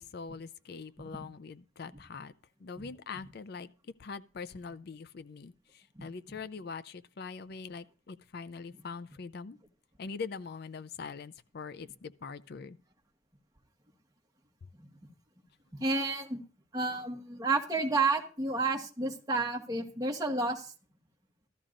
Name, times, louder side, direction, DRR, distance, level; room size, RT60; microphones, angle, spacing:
voice 1, 0.0-2.3 2.6-9.6 10.0-12.8, left 5 dB, 50° left, 0.4 m, -43 dB
voice 2, 15.7-16.4 16.7-20.7, right 3 dB, 15° right, 1.3 m, -31 dB
15.0 x 13.0 x 2.5 m
head